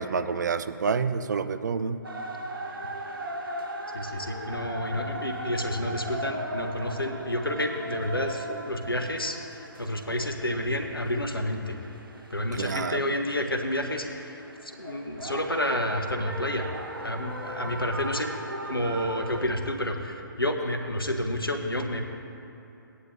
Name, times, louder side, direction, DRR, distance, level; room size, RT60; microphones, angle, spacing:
voice 1, 0.0-2.1 12.6-13.0 17.2-17.3, right 5 dB, 55° right, 11 dB, 0.5 m, -28 dB
sound 1, 2.0-19.5, right 1 dB, 75° right, 1.1 m, -38 dB
voice 2, 3.9-11.8 12.3-16.7 17.0-18.4 18.6-22.0, left 1 dB, 90° left, 5 dB, 1.0 m, -30 dB
16.0 x 9.7 x 2.6 m, 2.9 s
figure-of-eight pair, 135°, 12 cm